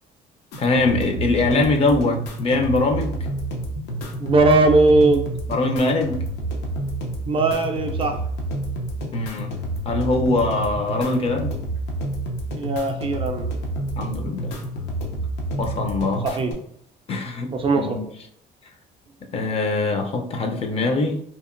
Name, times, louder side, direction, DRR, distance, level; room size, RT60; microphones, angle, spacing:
sound 1, 0.5-16.5, right 1 dB, 85° left, 0.7 m, -29 dB
voice 1, 0.6-3.3 5.5-6.2 9.1-9.5 9.8-11.6 14.0-14.6 15.6-16.4 17.1-18.1 19.3-21.2, left 2 dB, 35° left, 4 dB, 0.4 m, -23 dB
voice 2, 4.2-5.3 7.3-8.2 12.5-13.5 16.2-16.5 17.5-18.0, right 2 dB, 30° right, 4 dB, 0.3 m, -19 dB
2.8 x 2.4 x 2.4 m, 0.67 s
cardioid pair, 110°, 17 cm